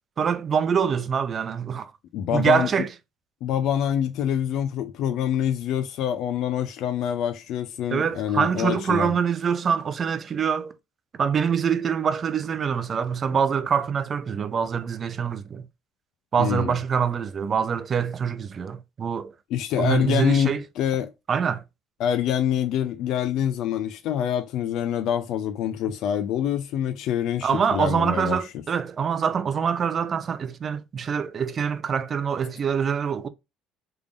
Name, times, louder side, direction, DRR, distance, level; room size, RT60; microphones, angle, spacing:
voice 1, 0.2-1.9 2.3-2.9 7.9-10.7 11.2-15.7 16.3-19.3 19.8-20.6 21.3-21.6 27.4-33.3, right 7 dB, 35° right, 0.4 m, -25 dB
voice 2, 2.1-2.7 3.4-9.1 16.4-16.8 19.5-21.1 22.0-28.4, left 9 dB, 65° left, 0.4 m, -26 dB
3.5 x 3.4 x 2.4 m
cardioid pair, 120°, 0 cm